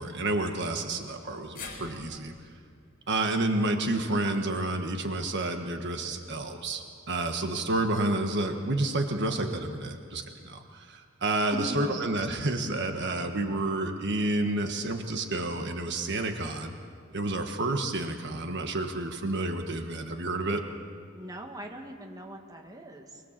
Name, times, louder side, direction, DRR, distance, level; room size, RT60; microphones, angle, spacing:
voice 1, 0.0-2.3 3.1-16.7 17.1-20.6, right 2 dB, 55° right, 5 dB, 1.5 m, -30 dB
sound 1, 1.6-5.8 6.2-6.3 7.4-7.5, left 4 dB, 45° left, 4.5 m, -49 dB
voice 2, 11.5-12.1 21.1-23.2, equal, 20° right, 2 dB, 1.9 m, -39 dB
24.5 x 20.5 x 7.5 m, 2.2 s
head